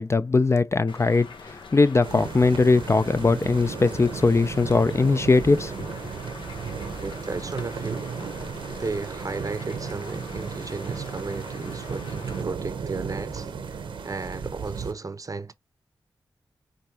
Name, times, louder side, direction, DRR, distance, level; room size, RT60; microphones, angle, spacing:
voice 1, 0.0-5.9, left 3 dB, 35° left, 0.4 m, -21 dB
sound 1, 0.9-12.4, left 4 dB, 80° left, 0.8 m, -44 dB
sound 2, 2.0-14.9, right 6 dB, 85° right, 0.8 m, -35 dB
voice 2, 7.0-8.1 8.7-15.5, right 3 dB, 45° right, 0.6 m, -34 dB
5.1 x 2.5 x 2.9 m
cardioid pair, 40°, 8 cm